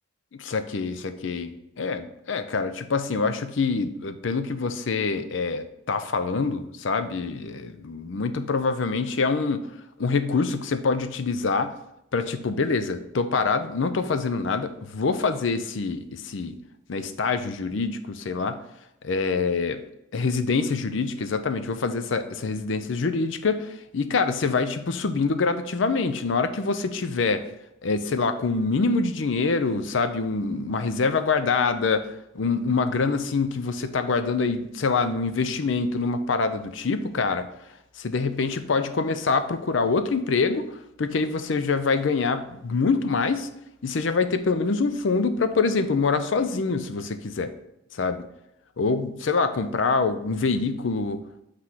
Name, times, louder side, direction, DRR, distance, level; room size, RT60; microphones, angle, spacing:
voice 1, 0.4-9.7 10.0-11.7 12.1-16.6 16.9-18.6 19.0-19.8 20.1-27.4 27.8-32.1 32.3-37.5 38.0-40.7 41.0-43.5 43.8-47.5 47.9-48.2 48.8-51.2, left 4 dB, 65° left, 10 dB, 0.5 m, -25 dB
5.9 x 3.2 x 5.8 m, 0.85 s
head